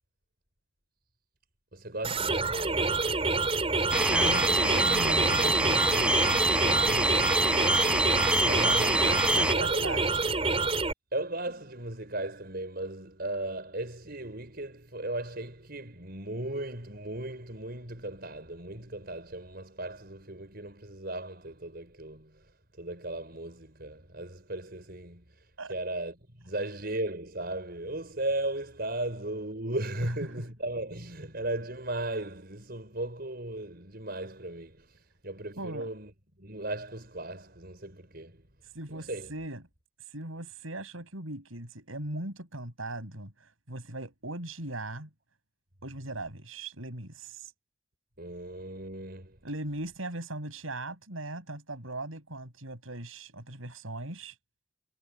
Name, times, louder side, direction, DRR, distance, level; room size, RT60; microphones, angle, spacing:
voice 1, 1.7-3.1 8.3-9.2 9.5-9.9 11.1-22.5 22.8-36.1 36.4-38.4 38.9-39.3 48.2-49.4, right 1 dB, 50° right, 6.2 m, -36 dB
sound 1, 2.0-10.9, right 3 dB, 30° right, 4.9 m, -27 dB
sound 2, 3.9-9.6, right 1 dB, 5° right, 5.4 m, -26 dB
voice 2, 4.1-6.2 6.6-7.2 9.1-10.2 25.6-25.7 35.6-35.9 38.7-39.6 40.0-45.1 45.8-47.5 49.4-54.4, right 2 dB, 85° right, 7.0 m, -39 dB
head